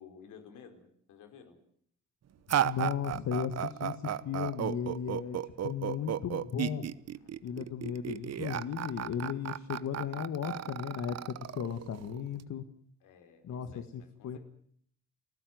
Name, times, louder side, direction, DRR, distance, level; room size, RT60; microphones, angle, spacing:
voice 1, 0.0-1.6 2.4-2.5 7.2-7.4 13.0-14.4, left 7 dB, 85° left, 6 dB, 4.8 m, -54 dB
sound 1, 2.5-12.4, right 10 dB, 55° right, 1.0 m, -34 dB
voice 2, 2.6-6.9 7.4-12.6 13.4-13.7 14.2-14.4, left 8 dB, 65° left, 9 dB, 1.8 m, -35 dB
30.0 x 15.0 x 9.4 m, 0.64 s
cardioid pair, 90°, 30 cm